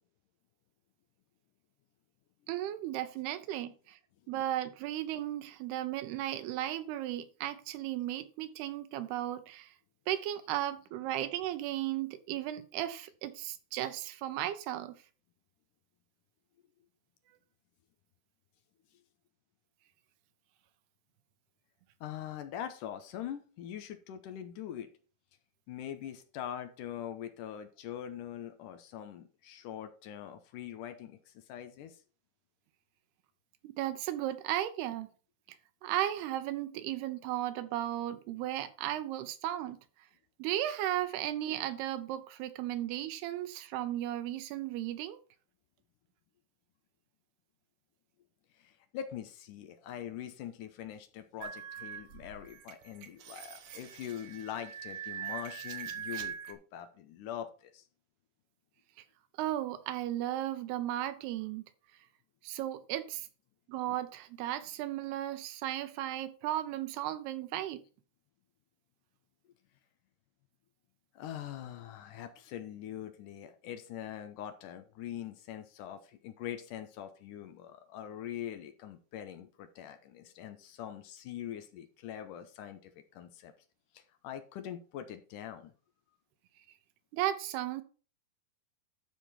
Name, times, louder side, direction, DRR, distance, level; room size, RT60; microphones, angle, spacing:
voice 1, 2.5-4.0 4.3-9.7 10.1-15.0 33.6-35.1 35.8-39.8 40.4-45.2 59.4-61.6 62.4-63.3 63.7-67.8 87.1-87.8, right 13 dB, 90° right, 2.9 m, -35 dB
voice 2, 22.0-24.9 25.7-32.0 48.6-57.8 71.2-83.5 83.9-85.7, left 10 dB, 75° left, 2.1 m, -43 dB
sound 1, 51.4-56.5, right 8 dB, 60° right, 2.1 m, -42 dB
12.0 x 4.3 x 5.6 m
omnidirectional pair, 4.5 m